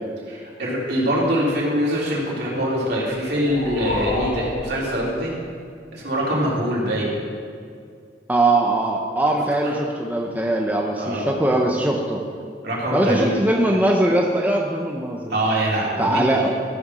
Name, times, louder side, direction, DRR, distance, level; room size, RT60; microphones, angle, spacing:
voice 1, 0.3-5.3 5.9-7.2 9.6-9.7 11.0-11.3 12.6-13.3 15.3-16.5, equal, 65° right, -5 dB, 3.6 m, -23 dB
sound 1, 3.1-5.7, left 2 dB, 50° left, 1.4 m, -30 dB
voice 2, 8.3-12.2 12.9-15.4 16.0-16.5, right 1 dB, 10° right, 0 dB, 0.8 m, -21 dB
14.0 x 7.0 x 6.2 m, 2.3 s
head